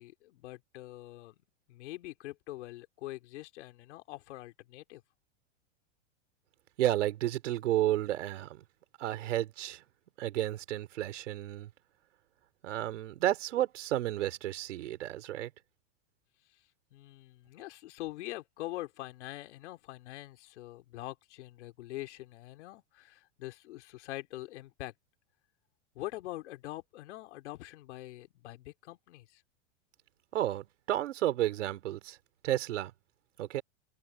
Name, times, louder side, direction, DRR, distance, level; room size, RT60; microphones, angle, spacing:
voice 1, 0.0-5.0 16.5-16.6 16.9-24.9 25.9-29.4, left 17 dB, 70° left, 3.8 m, -44 dB
voice 2, 6.8-8.6 9.0-9.8 10.2-11.7 12.6-15.5 30.3-32.2 32.4-32.9 33.4-33.6, right 13 dB, 80° right, 4.4 m, -32 dB
supercardioid pair, 135°, 37 cm